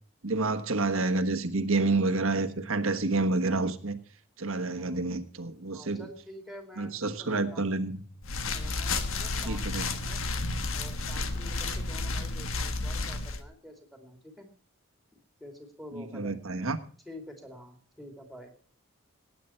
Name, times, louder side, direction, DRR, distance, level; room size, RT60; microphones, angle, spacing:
voice 1, 0.2-4.0 4.4-6.1 6.8-8.0 9.4-9.9 15.9-16.8, right 3 dB, 80° right, 1.4 m, -29 dB
voice 2, 5.7-7.7 8.5-10.2 10.7-14.5 15.1-16.4 17.0-18.5, left 1 dB, ahead, 2.8 m, -48 dB
sound 1, 8.2-13.4, left 3 dB, 80° left, 1.4 m, -32 dB
18.5 x 9.5 x 4.5 m
head